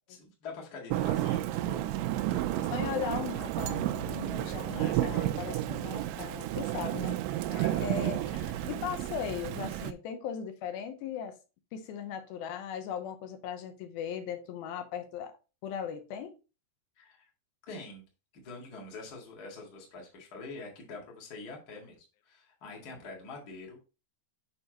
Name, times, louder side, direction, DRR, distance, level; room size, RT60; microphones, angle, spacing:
voice 1, 0.1-1.9 2.3-2.7 4.7-5.3 7.5-8.7 17.0-17.3 17.7-18.0 18.3-23.8, left 3 dB, 40° left, 1.5 m, -45 dB
Thunder / Rain, 0.9-9.9, right 14 dB, 85° right, 2.6 m, -32 dB
voice 2, 2.7-7.2 7.8-8.2 8.7-11.4 11.7-15.3 15.6-16.4, left 8 dB, 75° left, 2.3 m, -38 dB
7.1 x 5.7 x 2.9 m
omnidirectional pair, 4.9 m